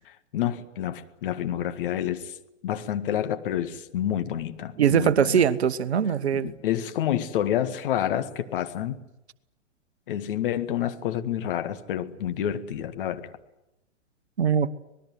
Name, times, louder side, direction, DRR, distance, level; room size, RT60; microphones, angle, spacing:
voice 1, 0.0-2.4 2.6-5.4 6.3-9.0 10.1-13.3, left 11 dB, 45° left, 1.8 m, -29 dB
voice 2, 4.8-6.5 14.4-14.7, right 8 dB, 60° right, 1.2 m, -22 dB
26.0 x 19.5 x 9.6 m
figure-of-eight pair, 115°, 37 cm